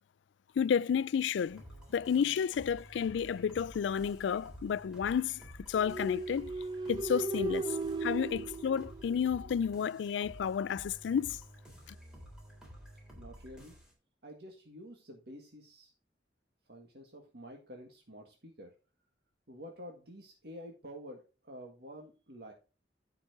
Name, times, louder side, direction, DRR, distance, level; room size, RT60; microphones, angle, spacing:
voice 1, 0.6-1.6 1.9-6.5 6.9-11.4, left 7 dB, 90° left, 0.3 m, -31 dB
sound 1, 1.5-13.9, equal, 5° right, 3.9 m, -52 dB
sound 2, 5.7-9.6, right 3 dB, 25° right, 0.4 m, -37 dB
voice 2, 13.2-13.7 14.2-15.9 16.7-18.8 19.5-22.5, equal, 65° right, 1.8 m, -49 dB
15.0 x 5.9 x 2.7 m
head